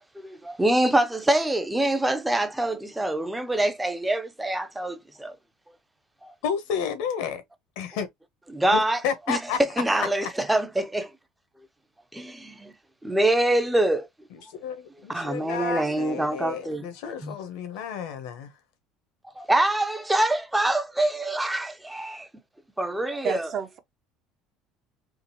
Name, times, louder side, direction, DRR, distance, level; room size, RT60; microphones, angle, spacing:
voice 1, 0.2-5.3 6.2-6.3 8.5-9.0 9.3-9.4 9.8-11.1 12.1-12.7 13.0-14.1 15.1-16.9 17.2-17.4 19.4-22.3 22.8-23.5, right 1 dB, 5° right, 0.6 m, -25 dB
voice 2, 6.4-7.4 7.8-8.1 8.7-9.6 10.0-10.3 14.3-18.5, left 7 dB, 80° left, 1.1 m, -31 dB
voice 3, 23.2-23.8, right 8 dB, 45° right, 0.7 m, -30 dB
3.8 x 2.5 x 2.9 m
cardioid pair, 135°, 0 cm